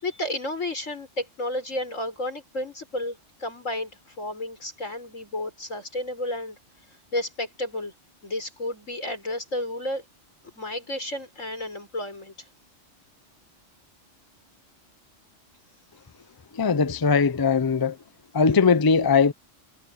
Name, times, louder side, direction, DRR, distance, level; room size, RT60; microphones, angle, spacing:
voice 1, 0.0-6.6 7.1-7.9 8.2-10.0 10.6-12.3, left 1 dB, 85° left, 6.4 m, -32 dB
voice 2, 16.5-18.0 18.3-19.3, left 5 dB, 30° left, 0.4 m, -20 dB
omnidirectional pair, 1.3 m